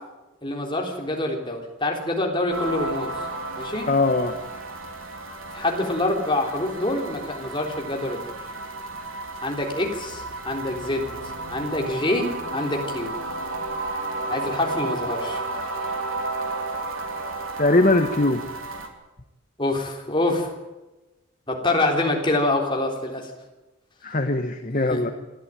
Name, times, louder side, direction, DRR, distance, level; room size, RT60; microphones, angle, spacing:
voice 1, 0.4-3.1 3.6-3.9 5.5-8.4 9.4-11.1 11.5-13.1 14.3-15.4 19.6-20.5 21.5-23.3 24.9-25.0, left 2 dB, 25° left, 1 dB, 3.6 m, -26 dB
sound 1, 2.5-18.9, right 2 dB, 90° right, 3.1 m, -33 dB
voice 2, 3.9-4.4 17.6-18.4 24.0-25.1, left 2 dB, 40° left, 7 dB, 1.3 m, -21 dB
25.5 x 13.5 x 9.1 m, 1.1 s
head